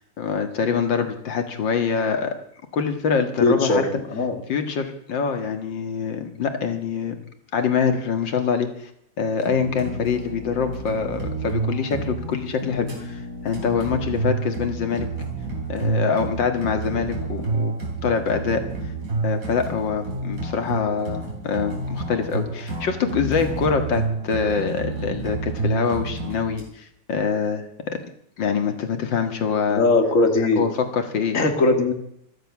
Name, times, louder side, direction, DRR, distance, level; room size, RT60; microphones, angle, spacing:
voice 1, 0.0-2.4 2.7-3.8 4.5-7.2 7.5-8.9 9.2-15.1 15.7-17.8 18.0-18.6 19.2-27.6 27.9-28.0 28.4-29.9 30.6-31.4, left 6 dB, 85° left, 7 dB, 2.4 m, -25 dB
voice 2, 3.4-4.4 29.7-30.7 31.3-31.9, left 3 dB, 45° left, 6 dB, 2.3 m, -20 dB
sound 1, 9.4-26.6, right 3 dB, 50° right, 4.1 m, -29 dB
16.0 x 13.0 x 6.1 m, 0.71 s
omnidirectional pair, 2.0 m